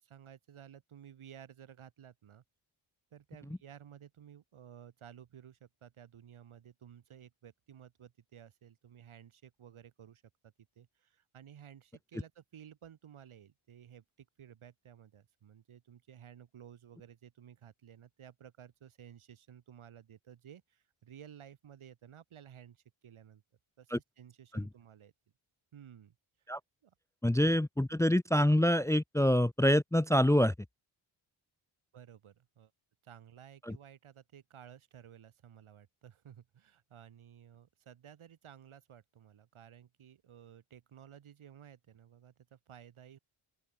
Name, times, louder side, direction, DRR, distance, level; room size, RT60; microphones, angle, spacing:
voice 1, 0.0-2.4 3.1-23.4 23.8-25.1 25.7-26.2 26.8-26.9 31.9-32.7 33.0-43.2, right 9 dB, 75° right, 4.7 m, -55 dB
voice 2, 27.2-30.5 33.6-33.8, left 1 dB, 5° left, 0.7 m, -26 dB
open air
cardioid pair, 70°, 50 cm